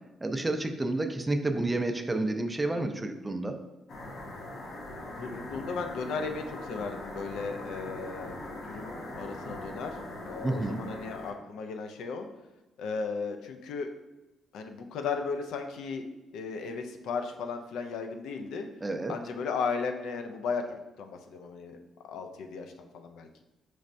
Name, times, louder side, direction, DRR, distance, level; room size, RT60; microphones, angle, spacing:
voice 1, 0.2-3.6 10.4-10.8 18.8-19.2, right 2 dB, 15° right, 6 dB, 0.4 m, -30 dB
sound 1, 3.9-11.3, left 1 dB, 60° left, 0.8 m, -41 dB
voice 2, 5.2-10.0 10.2-12.3 12.8-13.9 14.5-16.0 16.3-18.7 19.1-21.8 22.1-23.4, left 5 dB, 80° left, 5 dB, 0.4 m, -35 dB
4.2 x 3.2 x 2.5 m, 1.1 s
cardioid pair, 90°, 0 cm